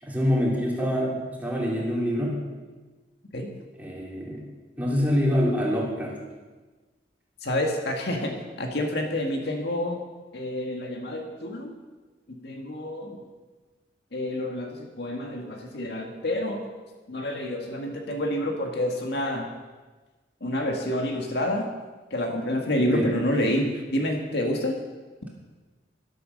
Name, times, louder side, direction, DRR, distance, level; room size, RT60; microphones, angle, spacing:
voice 1, 0.0-2.4 3.8-4.4 4.8-6.1 22.9-23.1, equal, 10° right, -4 dB, 3.6 m, -25 dB
voice 2, 7.4-10.0 10.3-11.7 12.3-13.2 14.1-16.7 17.1-19.5 20.4-21.7 22.1-24.8, left 1 dB, 65° left, 2 dB, 1.9 m, -28 dB
12.5 x 12.0 x 6.6 m, 1.3 s
head